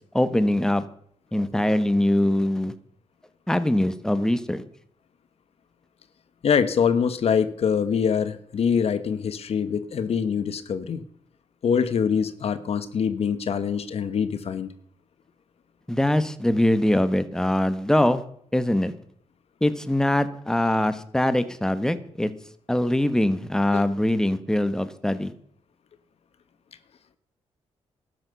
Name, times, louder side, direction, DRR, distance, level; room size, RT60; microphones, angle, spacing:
voice 1, 0.1-0.8 1.3-2.7 3.5-4.6 15.9-18.2 18.5-18.9 19.6-22.3 22.7-25.3, left 1 dB, 5° left, 12 dB, 1.2 m, -22 dB
voice 2, 6.4-11.0 11.6-14.7 23.7-23.9, left 7 dB, 60° left, 13 dB, 1.2 m, -24 dB
12.0 x 10.0 x 6.9 m, 0.65 s
cardioid pair, 70°, 11 cm